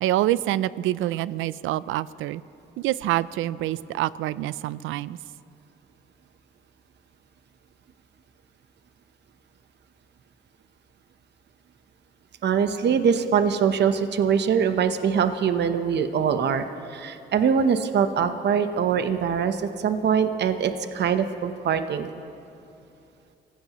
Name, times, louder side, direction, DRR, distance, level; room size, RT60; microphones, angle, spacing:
voice 1, 0.0-2.4 2.8-5.2, right 14 dB, 85° right, 18 dB, 0.4 m, -26 dB
voice 2, 12.4-16.7 16.9-22.1, right 7 dB, 60° right, 9 dB, 0.9 m, -23 dB
25.0 x 15.5 x 3.0 m, 2.6 s
cardioid pair, 90°, 20 cm